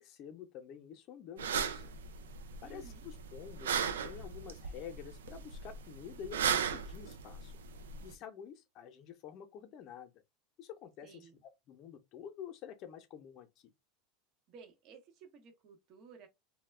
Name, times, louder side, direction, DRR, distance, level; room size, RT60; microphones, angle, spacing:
voice 1, 0.0-2.0 2.6-7.5 8.0-10.2 10.6-11.3 11.7-13.7, left 8 dB, 50° left, 0.6 m, -49 dB
sound 1, 1.4-8.1, right 7 dB, 90° right, 0.3 m, -37 dB
voice 2, 2.6-3.0 11.0-11.4 14.5-16.3, right 5 dB, 50° right, 0.8 m, -56 dB
2.3 x 2.1 x 3.2 m
hypercardioid pair, 100°, 0 cm